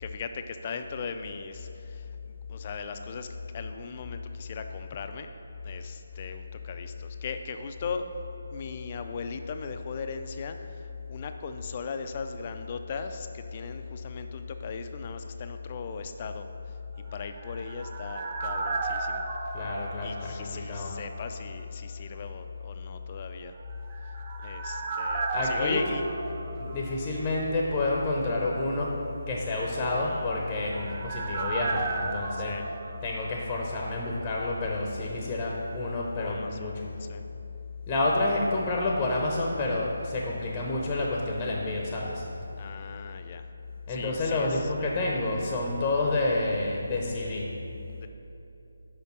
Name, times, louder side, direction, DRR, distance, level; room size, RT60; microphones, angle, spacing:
voice 1, 0.0-3.3 3.5-5.3 5.6-8.0 8.5-16.7 17.1-19.3 20.0-23.5 24.4-26.0 30.0-30.3 32.4-32.7 36.1-36.7 37.0-37.2 42.6-43.5 43.9-44.9 46.0-46.1 47.9-48.1, left 5 dB, 30° left, 7 dB, 0.4 m, -38 dB
sound 1, 17.1-21.0 21.2-21.3 23.7-27.4 27.7-27.8 30.0-33.9 34.2-34.3, right 3 dB, 25° right, 0.5 m, -34 dB
voice 2, 19.5-20.9 25.3-25.8 26.6-29.0 29.3-32.6 33.0-36.9 37.9-42.3 43.9-47.5, left 2 dB, 15° left, -2 dB, 0.7 m, -29 dB
6.5 x 5.1 x 6.0 m, 2.9 s
figure-of-eight pair, 150°, 0 cm